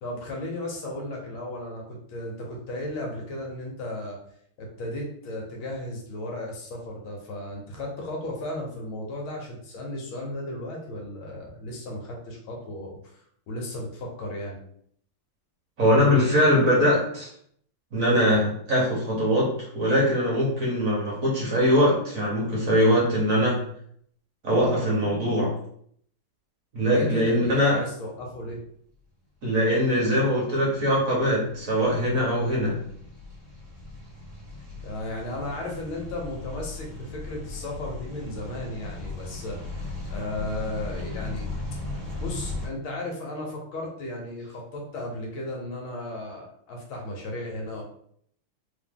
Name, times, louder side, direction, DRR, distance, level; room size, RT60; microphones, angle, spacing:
voice 1, 0.0-4.2 4.6-14.6 26.9-28.6 34.8-41.5 42.2-47.8, left 1 dB, 75° left, -1 dB, 1.9 m, -35 dB
voice 2, 15.8-17.3 17.9-23.6 24.4-25.5 26.7-27.8 29.4-32.8, equal, 45° right, -4 dB, 1.4 m, -22 dB
sound 1, 30.0-42.7, left 2 dB, 30° right, 1.5 m, -37 dB
3.6 x 3.2 x 3.7 m, 0.65 s
omnidirectional pair, 2.3 m